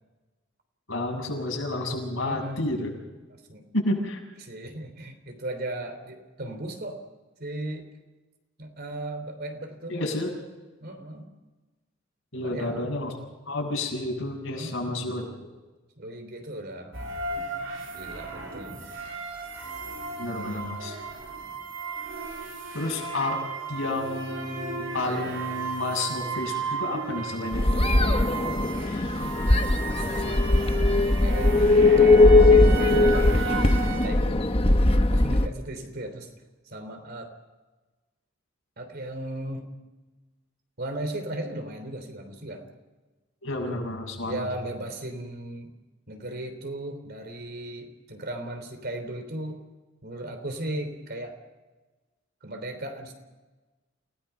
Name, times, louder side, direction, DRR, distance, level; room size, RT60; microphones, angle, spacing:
voice 1, 0.9-2.9 3.7-4.2 9.9-10.3 12.3-13.1 13.5-15.2 20.2-21.0 22.7-23.4 23.7-27.6 43.4-44.5, left 2 dB, 80° left, 0 dB, 7.1 m, -30 dB
voice 2, 2.2-2.6 3.3-3.6 4.4-7.0 7.4-7.9 8.6-10.0 10.8-11.3 12.3-12.9 14.5-15.3 16.0-17.0 17.3-17.4 17.9-18.8 29.8-32.2 32.6-34.4 34.8-36.3 36.7-37.3 38.8-39.7 40.8-42.7 44.3-45.7 46.1-49.6 50.0-51.4 52.4-53.1, right 1 dB, 55° right, 6 dB, 3.4 m, -37 dB
sound 1, 16.9-34.1, right 5 dB, 70° right, 4.1 m, -35 dB
sound 2, 27.5-35.5, left 2 dB, 30° left, 1.1 m, -19 dB
29.0 x 18.0 x 5.8 m, 1.2 s
head